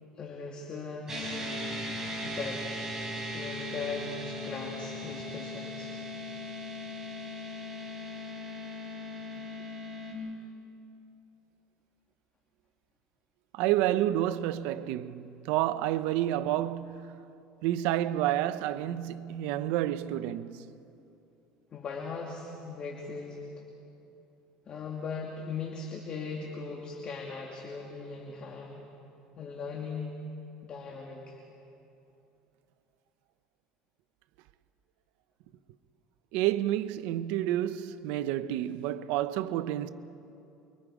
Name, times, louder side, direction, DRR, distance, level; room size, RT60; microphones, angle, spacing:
voice 1, 0.2-1.5 2.2-2.6 3.3-5.9 21.7-23.4 24.7-28.9 29.4-30.1 30.6-31.4, left 4 dB, 40° left, 2.7 m, -39 dB
sound 1, 1.1-10.1, left 1 dB, 20° right, 6.7 m, -38 dB
voice 2, 13.5-17.1 17.6-20.7 36.3-39.9, right 13 dB, 75° right, 0.8 m, -29 dB
29.0 x 24.0 x 5.0 m
supercardioid pair, 115°, 3 cm